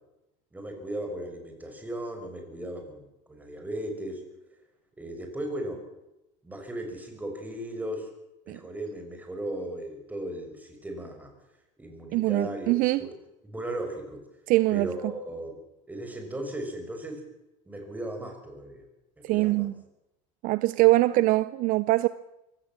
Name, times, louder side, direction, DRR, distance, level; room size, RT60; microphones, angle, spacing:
voice 1, 0.5-4.2 5.0-5.8 6.4-8.1 8.5-11.3 11.8-13.2 13.4-14.2 14.7-15.6 15.9-17.2 17.7-18.9 19.2-19.7, right 1 dB, 10° right, 6.0 m, -36 dB
voice 2, 12.1-13.1 14.5-15.1 19.2-19.7 20.4-22.1, right 18 dB, 60° right, 0.7 m, -23 dB
23.5 x 17.0 x 7.5 m
supercardioid pair, 115°, 16 cm